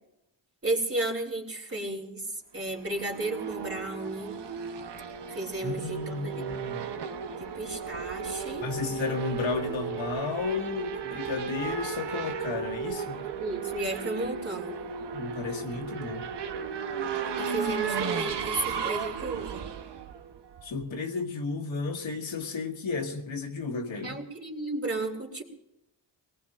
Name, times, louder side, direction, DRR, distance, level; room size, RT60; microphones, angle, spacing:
voice 1, 0.6-4.4 5.3-6.5 7.4-8.7 13.4-14.8 17.4-19.7 24.0-25.4, right 2 dB, 30° right, 0 dB, 3.2 m, -33 dB
Race car auto racing / Accelerating revving vroom, 2.7-20.8, right 6 dB, 60° right, 1.1 m, -35 dB
voice 2, 5.6-6.9 8.6-13.2 15.1-16.2 20.6-24.2, left 4 dB, 75° left, 1 dB, 2.1 m, -33 dB
25.0 x 19.0 x 2.5 m, 0.88 s
cardioid pair, 90°, 46 cm